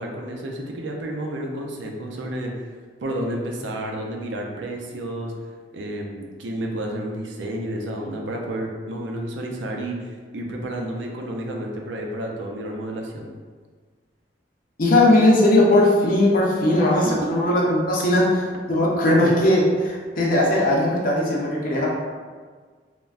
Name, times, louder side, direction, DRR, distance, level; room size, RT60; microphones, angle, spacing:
voice 1, 0.0-2.7 3.0-5.3 5.7-13.3 17.0-17.1, right 1 dB, 85° right, 0 dB, 0.5 m, -31 dB
voice 2, 14.8-21.9, left 1 dB, 50° left, -3 dB, 0.6 m, -18 dB
3.3 x 2.1 x 2.4 m, 1.5 s
head